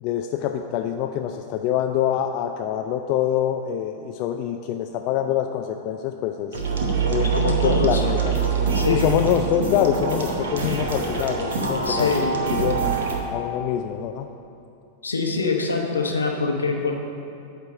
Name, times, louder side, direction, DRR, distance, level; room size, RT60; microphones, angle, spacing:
voice 1, 0.0-6.6 7.1-8.4 8.9-12.1 12.5-12.8 13.3-14.3, left 10 dB, 40° left, 5 dB, 0.3 m, -25 dB
sound 1, 6.5-13.2, right 5 dB, 65° right, 1.0 m, -24 dB
voice 2, 7.3-8.0 8.7-9.1 11.8-12.4 15.0-16.9, left 4 dB, 75° left, 2 dB, 0.9 m, -24 dB
9.7 x 3.4 x 6.9 m, 2.6 s
figure-of-eight pair, 90°, 0 cm